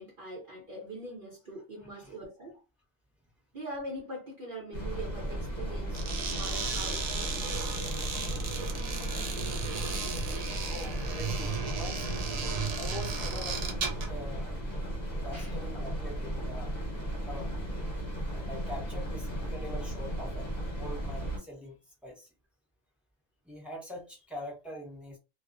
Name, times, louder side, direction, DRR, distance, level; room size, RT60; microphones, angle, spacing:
voice 1, 0.0-2.6 3.5-7.5 14.3-14.4 15.3-15.6, right 1 dB, 50° right, 0.9 m, -42 dB
voice 2, 1.8-2.1 8.8-8.9 9.3-9.5 10.7-12.1 12.7-14.6 15.2-16.7 17.2-17.5 18.3-21.8 22.0-22.3 23.4-25.2, left 1 dB, ahead, 0.6 m, -44 dB
sound 1, 4.7-21.4, right 1 dB, 40° left, 1.0 m, -35 dB
sound 2, 5.9-14.2, right 5 dB, 80° right, 0.3 m, -35 dB
2.4 x 2.1 x 2.4 m
omnidirectional pair, 1.3 m